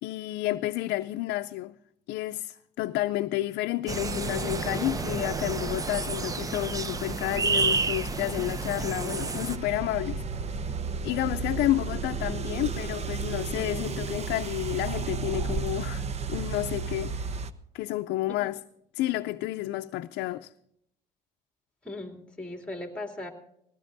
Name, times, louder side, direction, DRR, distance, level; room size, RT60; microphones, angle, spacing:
voice 1, 0.0-1.7 2.1-10.2 11.0-17.4 17.7-18.6 18.9-20.5, left 16 dB, 80° left, 0.5 m, -30 dB
sound 1, 3.9-9.6, right 4 dB, 20° right, 0.7 m, -30 dB
sound 2, 3.9-17.5, right 5 dB, 40° right, 0.9 m, -34 dB
voice 2, 21.8-23.3, left 2 dB, 5° left, 2.9 m, -38 dB
20.0 x 17.0 x 2.6 m
cardioid pair, 110°, 17 cm